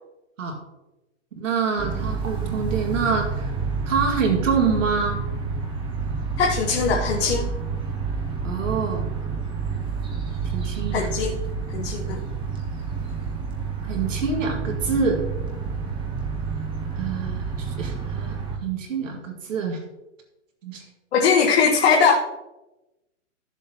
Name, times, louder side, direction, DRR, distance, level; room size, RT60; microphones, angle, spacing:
voice 1, 1.4-3.5 3.9-5.2 8.4-9.1 10.5-11.1 13.8-15.2 17.0-19.8 20.6-20.8, right 5 dB, 80° right, 3 dB, 2.1 m, -26 dB
sound 1, 1.8-18.6, right 5 dB, 10° right, 1.0 m, -29 dB
voice 2, 6.4-7.5 10.9-11.4 11.7-12.2 21.1-22.1, left 5 dB, 55° left, 0 dB, 1.3 m, -20 dB
13.5 x 7.2 x 2.9 m, 0.97 s
hypercardioid pair, 155°, 38 cm